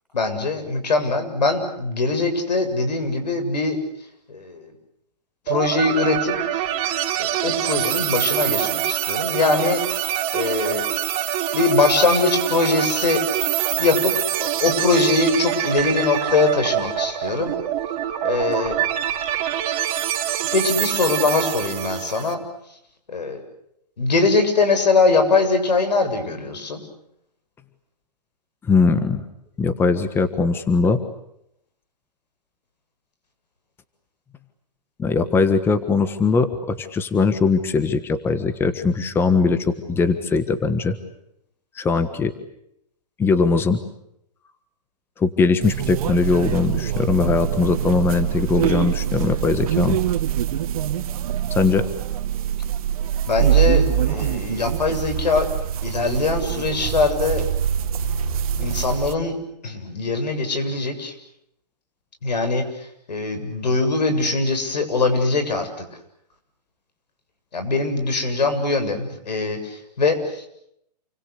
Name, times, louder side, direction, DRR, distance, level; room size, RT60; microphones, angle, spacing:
voice 1, 0.1-3.8 4.3-4.7 5.5-6.6 7.2-10.8 11.5-13.2 13.8-14.1 14.4-17.5 18.2-18.8 20.5-22.4 23.1-23.4 24.0-26.8 53.3-55.5 55.8-57.5 58.6-59.3 59.6-61.1 62.2-65.7 67.5-70.5, left 3 dB, 85° left, 8 dB, 7.4 m, -22 dB
sound 1, 5.5-22.3, right 12 dB, 35° right, 3.6 m, -25 dB
voice 2, 28.6-29.2 29.6-31.0 35.0-41.0 41.7-42.3 43.2-43.8 45.2-50.0 51.5-51.9, left 4 dB, 10° left, 11 dB, 1.4 m, -20 dB
sound 2, 45.6-59.1, right 10 dB, 60° right, 2.3 m, -24 dB
29.0 x 24.5 x 8.4 m, 0.76 s
hypercardioid pair, 145°, 21 cm